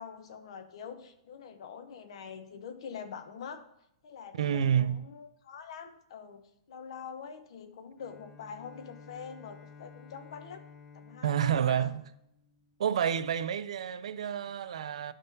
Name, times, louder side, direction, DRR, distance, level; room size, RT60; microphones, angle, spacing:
voice 1, 0.0-3.6 4.0-6.4 6.7-10.6 10.9-11.9, left 6 dB, 60° left, 0.7 m, -45 dB
voice 2, 4.3-5.0 11.2-12.0 12.8-15.1, right 9 dB, 75° right, 0.4 m, -29 dB
Bowed string instrument, 8.0-13.0, left 5 dB, 15° left, 0.3 m, -53 dB
10.5 x 3.7 x 2.7 m
hypercardioid pair, 165°, 3 cm